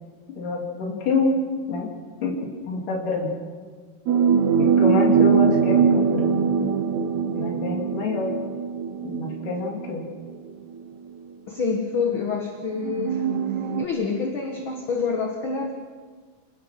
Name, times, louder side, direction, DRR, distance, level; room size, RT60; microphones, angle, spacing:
voice 1, 0.4-1.3 1.7-1.9 2.2-2.4 2.7-3.3 4.6-6.4 7.3-8.3 9.0-10.0, left 3 dB, 65° left, -1 dB, 4.8 m, -26 dB
sound 1, 4.1-10.0 10.9-11.0 12.8-13.9, right 6 dB, 65° right, 2.1 m, -22 dB
voice 2, 11.5-13.2 13.8-15.7, left 5 dB, 45° left, 2 dB, 2.1 m, -27 dB
29.5 x 19.0 x 6.0 m, 1.5 s
omnidirectional pair, 4.0 m